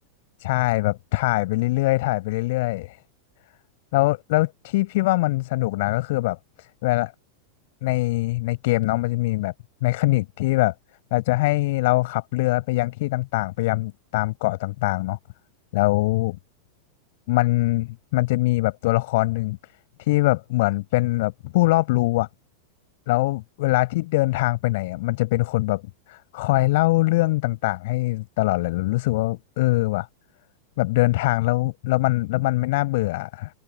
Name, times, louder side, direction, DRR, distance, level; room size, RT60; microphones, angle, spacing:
voice 1, 0.4-3.0 3.9-7.1 7.8-9.5 9.8-10.7 11.1-15.2 15.7-16.4 17.3-19.6 20.0-22.3 23.1-25.8 26.1-30.1 30.8-33.5, left 20 dB, 60° left, 7.9 m, -23 dB
open air
figure-of-eight pair, 95°, 0 cm